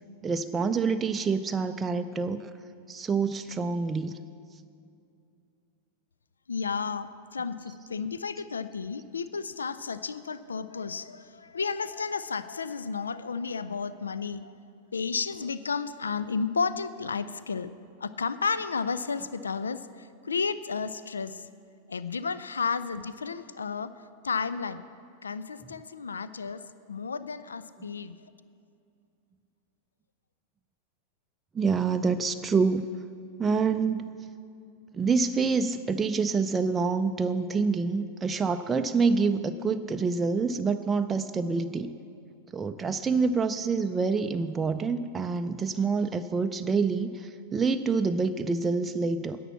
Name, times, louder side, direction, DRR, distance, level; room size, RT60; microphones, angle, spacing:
voice 1, 0.2-2.5 2.9-4.1 31.5-32.9 33.4-34.0 34.9-42.0 42.5-49.4, right 4 dB, 15° right, 7 dB, 0.4 m, -27 dB
voice 2, 6.5-14.5 14.9-17.7 18.0-21.5 21.9-23.9 24.2-24.8 25.2-26.6 26.9-28.3, left 5 dB, 75° left, 14 dB, 0.3 m, -32 dB
11.0 x 8.4 x 7.1 m, 2.5 s
figure-of-eight pair, 90°, 0 cm